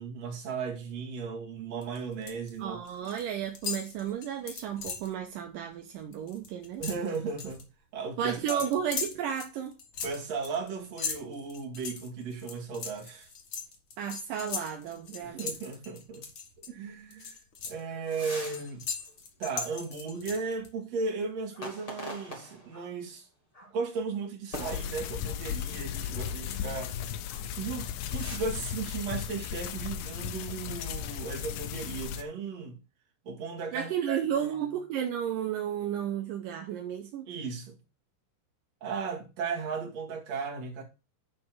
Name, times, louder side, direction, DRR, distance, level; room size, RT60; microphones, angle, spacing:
voice 1, 0.0-2.8 6.8-7.6 7.9-8.6 10.0-13.3 15.2-16.3 16.6-17.4 17.7-18.9 19.4-23.3 23.7-27.0 27.6-32.8 33.2-34.6 37.3-37.8 38.8-40.8, right 5 dB, 50° right, 3.0 m, -36 dB
sound 1, 1.8-2.5 2.8-3.2 3.5-5.1 5.5-5.7 6.0-7.6 8.5-16.7 17.1-20.7, left 5 dB, 50° left, 1.6 m, -39 dB
voice 2, 2.6-6.8 8.2-9.7 14.0-15.5 33.7-37.3, right 9 dB, 75° right, 2.4 m, -33 dB
sound 2, 18.1-18.7 19.1-19.2 21.5-22.9 23.5-23.7 24.5-25.4 27.2-27.4 27.8-28.4, equal, 15° left, 1.5 m, -43 dB
sound 3, 24.5-32.2, left 10 dB, 85° left, 2.6 m, -36 dB
10.0 x 4.3 x 6.1 m
omnidirectional pair, 4.2 m